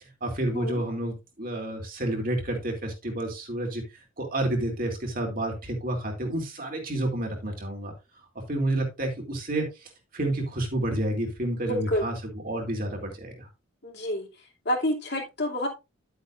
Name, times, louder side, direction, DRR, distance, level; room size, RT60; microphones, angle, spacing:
voice 1, 0.2-7.9 8.5-12.2 12.4-13.5, right 1 dB, 45° right, 2 dB, 2.7 m, -30 dB
voice 2, 11.6-12.0 13.8-14.3 14.6-15.7, equal, 55° left, 1 dB, 2.6 m, -28 dB
11.0 x 8.2 x 2.5 m, 0.25 s
head